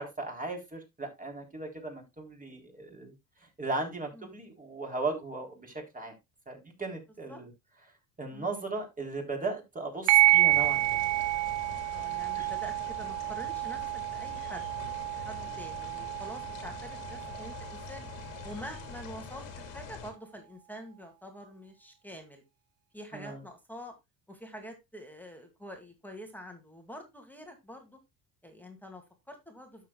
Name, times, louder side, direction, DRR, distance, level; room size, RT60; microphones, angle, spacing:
voice 1, 0.0-3.1 3.4-6.1 6.5-7.5 8.2-11.0 12.4-12.5 23.1-23.4, right 3 dB, 15° right, 2 dB, 3.6 m, -37 dB
sound 1, 10.1-19.1, right 17 dB, 65° right, 0.8 m, -29 dB
sound 2, 10.5-20.1, left 6 dB, 65° left, 2.6 m, -45 dB
voice 2, 11.9-14.6 15.1-18.0 18.4-22.4 22.9-23.9 24.3-28.0 28.4-29.9, equal, 5° left, 3 dB, 2.3 m, -46 dB
12.0 x 6.9 x 2.3 m, 0.21 s
hypercardioid pair, 80°, 47 cm